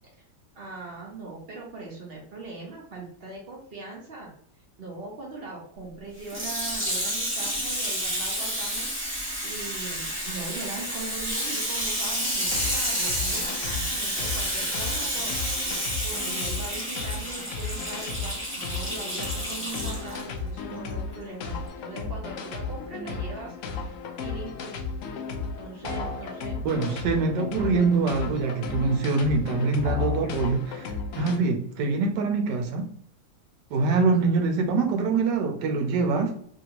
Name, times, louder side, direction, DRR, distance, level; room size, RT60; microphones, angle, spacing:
voice 1, 0.5-4.3 4.8-9.0 9.4-15.3 16.0-21.6 21.8-23.5 24.2-24.7 25.3-26.6, right 3 dB, 45° right, 0.8 m, -40 dB
Water tap faucet / Sink (filling or washing), 6.2-20.2 20.9-21.0, equal, 10° right, 0.7 m, -30 dB
sound 1, 12.4-31.4, left 4 dB, 75° left, 0.7 m, -35 dB
sound 2, 25.8-26.3 29.8-30.3, left 5 dB, 55° left, 1.2 m, -30 dB
voice 2, 26.6-32.9 33.7-36.4, right 4 dB, 80° right, 1.3 m, -24 dB
2.9 x 2.7 x 2.8 m
omnidirectional pair, 1.8 m